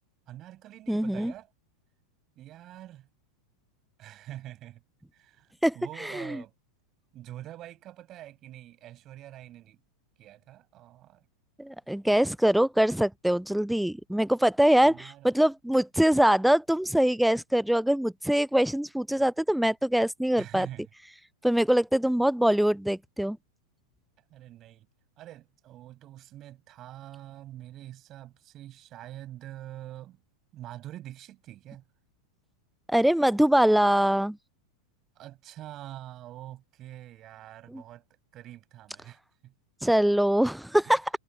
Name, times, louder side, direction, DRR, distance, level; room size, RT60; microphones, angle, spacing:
voice 1, 0.3-1.5 2.4-3.1 4.0-4.8 5.1-5.5 5.7-6.5 7.1-9.8 10.2-11.2 14.8-15.3 20.4-20.9 24.3-24.9 25.2-30.2 30.5-31.8 35.2-38.0 38.3-39.5 40.8-41.0, right 13 dB, 35° right, 7.2 m, -45 dB
voice 2, 0.9-1.3 5.6-5.7 6.1-6.4 11.6-20.7 21.4-23.4 32.9-34.4 37.7-37.8 39.8-41.1, right 1 dB, ahead, 0.4 m, -23 dB
figure-of-eight pair, 90°, 0 cm